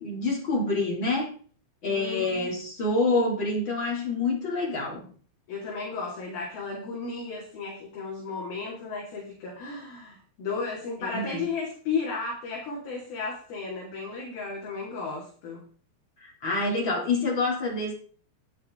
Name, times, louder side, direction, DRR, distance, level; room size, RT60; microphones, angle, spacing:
voice 1, 0.0-1.3 1.8-5.1 11.0-11.4 16.2-17.9, left 2 dB, 30° left, 2.9 m, -27 dB
voice 2, 1.9-2.5 5.5-15.7, left 4 dB, 50° left, 4.3 m, -34 dB
12.5 x 11.0 x 3.8 m
omnidirectional pair, 5.9 m